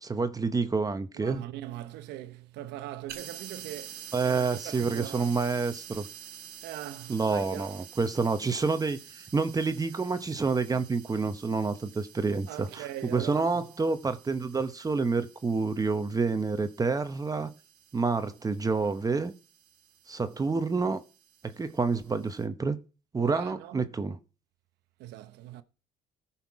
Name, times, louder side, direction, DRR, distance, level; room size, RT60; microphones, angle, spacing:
voice 1, 0.0-1.4 4.1-6.0 7.1-12.8 13.1-17.5 17.9-19.3 20.1-21.0 21.6-22.8 23.1-24.2, right 4 dB, 20° right, 0.9 m, -28 dB
voice 2, 1.1-5.3 6.6-7.7 12.5-13.6 23.2-23.8 25.0-25.6, right 13 dB, 90° right, 0.9 m, -41 dB
sound 1, 3.1-22.4, right 9 dB, 70° right, 1.6 m, -49 dB
14.5 x 5.7 x 4.7 m
cardioid pair, 110°, 17 cm